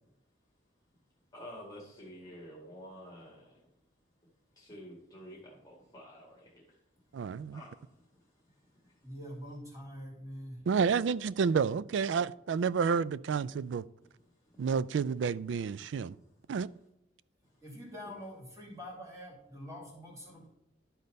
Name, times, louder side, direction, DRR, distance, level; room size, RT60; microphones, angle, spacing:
voice 1, 1.3-3.6 4.6-6.8 7.5-8.2 8.7-8.9 18.0-18.1, equal, 20° left, 1.8 m, -50 dB
voice 2, 7.1-7.6 10.7-13.8 14.6-16.2 16.5-16.7, right 6 dB, 75° right, 0.3 m, -30 dB
voice 3, 9.0-10.7 17.6-20.5, equal, 15° right, 2.7 m, -45 dB
11.5 x 4.0 x 5.3 m
head